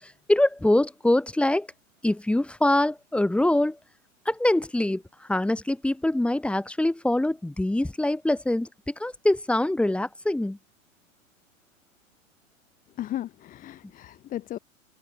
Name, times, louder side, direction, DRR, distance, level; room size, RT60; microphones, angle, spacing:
voice 1, 0.0-1.7 2.0-3.8 4.3-10.6, left 1 dB, 5° left, 3.4 m, -24 dB
voice 2, 13.0-14.6, left 13 dB, 20° left, 1.4 m, -35 dB
supercardioid pair, 155°, 41 cm